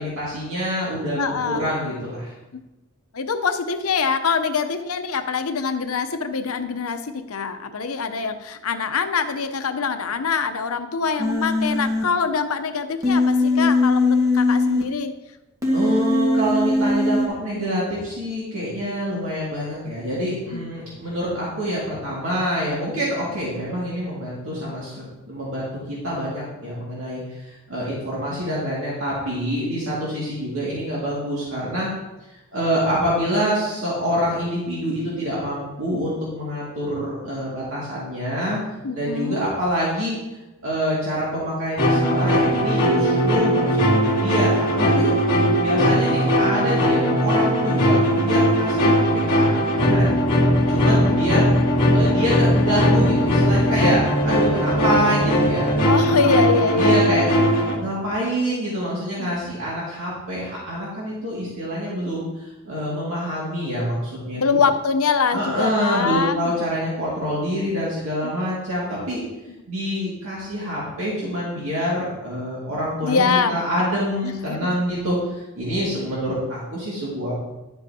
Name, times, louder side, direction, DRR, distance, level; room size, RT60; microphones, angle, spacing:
voice 1, 0.0-2.3 15.7-31.9 32.5-38.6 38.9-40.2 40.6-45.1 45.6-50.1 50.7-51.5 51.9-55.7 56.7-57.3 57.8-64.6 65.3-69.2 69.7-77.3, equal, 70° right, -6 dB, 2.2 m, -26 dB
voice 2, 1.1-1.6 3.1-15.1 20.5-20.6 38.8-39.5 55.8-57.2 59.2-59.3 64.4-66.5 68.2-68.3 73.0-73.6 74.5-74.7, left 5 dB, 80° left, 8 dB, 0.7 m, -24 dB
Human voice, 11.2-12.0 13.0-14.8 15.6-17.3, left 2 dB, 15° right, 1.6 m, -20 dB
sound 1, 41.8-57.7, equal, 40° left, 2.3 m, -19 dB
11.0 x 7.9 x 2.8 m, 1.0 s
head